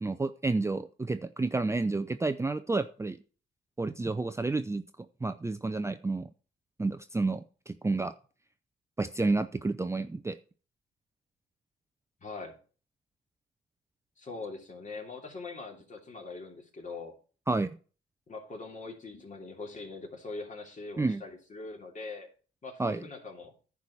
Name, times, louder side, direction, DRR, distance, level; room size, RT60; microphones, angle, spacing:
voice 1, 0.0-3.2 3.8-4.8 5.2-6.3 6.8-8.1 9.0-10.4 17.5-17.7 21.0-21.2 22.8-23.0, right 3 dB, 15° right, 10 dB, 0.5 m, -30 dB
voice 2, 12.2-12.6 14.2-17.1 18.3-22.3 22.6-23.5, left 3 dB, 40° left, 2 dB, 3.0 m, -42 dB
10.5 x 4.8 x 7.1 m, 0.38 s
cardioid pair, 90°, 20 cm